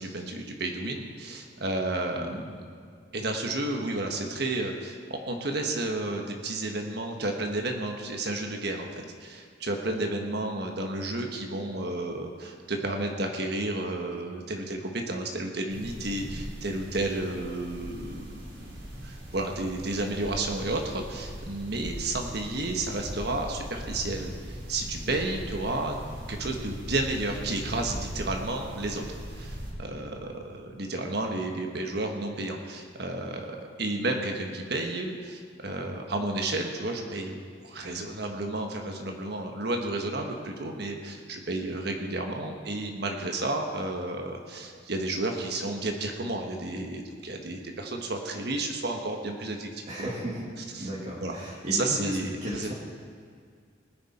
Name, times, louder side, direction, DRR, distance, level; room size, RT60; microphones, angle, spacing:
voice 1, 0.0-2.6 3.1-18.7 19.0-26.0 26.3-37.4 37.6-50.1 50.7-50.9 51.2-51.4 51.7-52.7, right 2 dB, 60° right, 2 dB, 1.4 m, -32 dB
sound 1, 15.7-29.7, equal, 85° right, 3.5 m, -40 dB
voice 2, 49.9-50.4 50.8-52.2 52.4-52.7, equal, 40° right, -6 dB, 2.2 m, -35 dB
19.5 x 10.5 x 4.3 m, 2.2 s
head